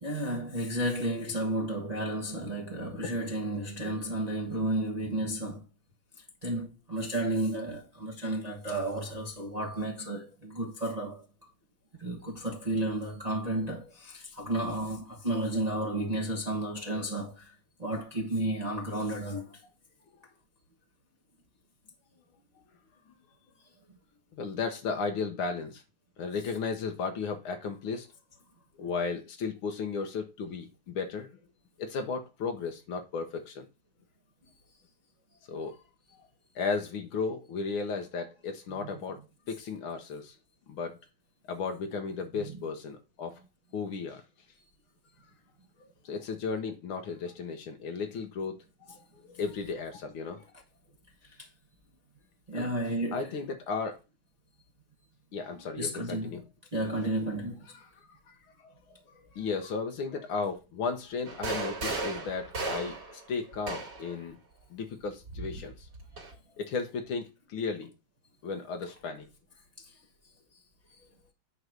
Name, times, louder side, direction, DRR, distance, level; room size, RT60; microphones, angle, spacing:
voice 1, 0.0-5.6 6.4-11.2 12.0-17.5 17.8-19.5 38.8-39.0 42.3-42.5 52.5-53.3 55.8-56.3 56.7-57.7 69.8-69.9, right 1 dB, 25° right, 1.0 m, -32 dB
voice 2, 24.3-25.8 26.2-28.1 28.8-31.3 31.8-33.7 35.5-35.8 36.2-36.3 36.6-40.4 40.7-41.0 41.5-43.4 43.7-44.2 46.0-50.5 52.5-52.7 53.1-54.0 55.3-56.4 57.7-57.9 58.3-64.4 64.7-65.9 66.6-67.9 68.4-69.3, left 5 dB, 75° left, 1.8 m, -35 dB
sound 1, 61.3-64.2 65.3-66.3, right 3 dB, 55° right, 2.9 m, -36 dB
9.5 x 3.2 x 6.5 m
omnidirectional pair, 2.3 m